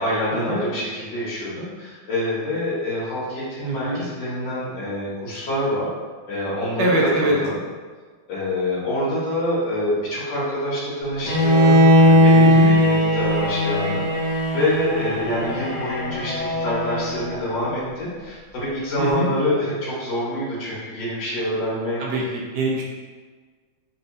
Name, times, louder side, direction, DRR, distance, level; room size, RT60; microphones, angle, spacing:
voice 1, 0.0-5.9 6.3-6.9 7.2-7.6 8.3-22.0, left 1 dB, 70° left, -9 dB, 1.9 m, -26 dB
voice 2, 3.6-4.0 6.8-7.4 12.4-12.7 19.0-19.3 22.0-22.2 22.5-22.8, right 1 dB, 70° right, -3 dB, 1.2 m, -23 dB
Bowed string instrument, 11.2-17.3, left 1 dB, 40° left, 0.9 m, -18 dB
4.2 x 2.8 x 2.6 m, 1.5 s
omnidirectional pair, 2.2 m